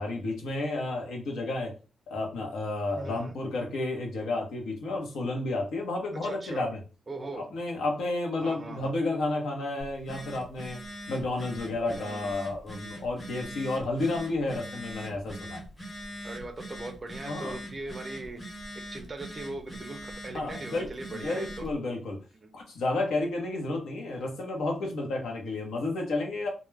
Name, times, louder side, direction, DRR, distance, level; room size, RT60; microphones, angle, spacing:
voice 1, 0.0-1.7 2.1-6.8 7.3-10.8 11.1-15.6 17.3-17.6 20.3-22.2 22.5-26.5, left 2 dB, 85° left, 1 dB, 0.8 m, -31 dB
voice 2, 2.9-3.4 6.2-6.7 7.1-7.5 8.4-9.0 11.9-12.3 16.2-18.4 18.9-21.7 22.4-22.5, right 2 dB, 25° right, 5 dB, 0.4 m, -40 dB
Telephone, 9.8-21.7, equal, 20° left, 0.9 m, -42 dB
2.3 x 2.1 x 3.2 m, 0.34 s
wide cardioid pair, 155°, 0 cm